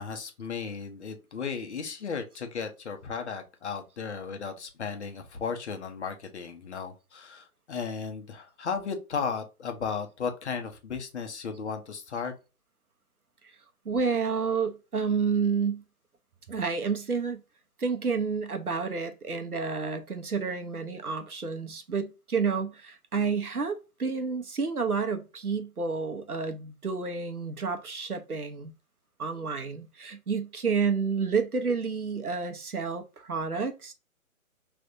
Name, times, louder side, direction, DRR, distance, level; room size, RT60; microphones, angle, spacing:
voice 1, 0.0-12.3, left 6 dB, 50° left, 1.1 m, -35 dB
voice 2, 13.8-15.8 16.5-17.4 17.8-28.7 29.2-33.9, right 5 dB, 85° right, 1.0 m, -30 dB
5.1 x 3.4 x 2.7 m
figure-of-eight pair, 135°, 43 cm